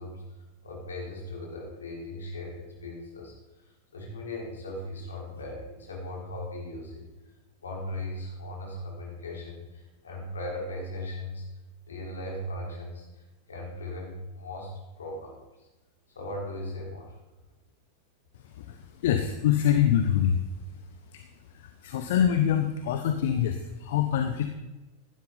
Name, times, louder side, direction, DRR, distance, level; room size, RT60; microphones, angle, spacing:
voice 1, 0.0-3.3 3.9-7.1 7.6-11.5 11.9-14.7 15.0-15.7 16.1-17.1 18.5-18.6, left 1 dB, 70° left, -1 dB, 4.2 m, -38 dB
voice 2, 18.6-20.4 21.1-21.2 21.5-24.5, left 9 dB, 55° left, 7 dB, 0.9 m, -25 dB
15.5 x 11.5 x 4.0 m, 1.1 s
figure-of-eight pair, 90°, 0 cm